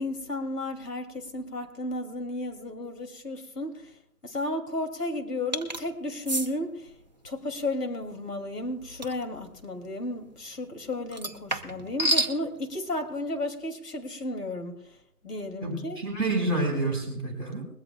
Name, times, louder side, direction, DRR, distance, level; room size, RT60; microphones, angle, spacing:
voice 1, 0.0-3.9 4.2-6.9 7.2-14.9 15.2-16.0, left 1 dB, 80° left, 2.9 m, -33 dB
sound 1, 5.5-5.8 6.3-6.5 9.0-9.2 11.1-12.4, right 1 dB, 30° right, 0.7 m, -28 dB
voice 2, 15.6-17.6, right 2 dB, 10° left, 3.8 m, -28 dB
21.5 x 16.0 x 2.3 m
hypercardioid pair, 170°, 47 cm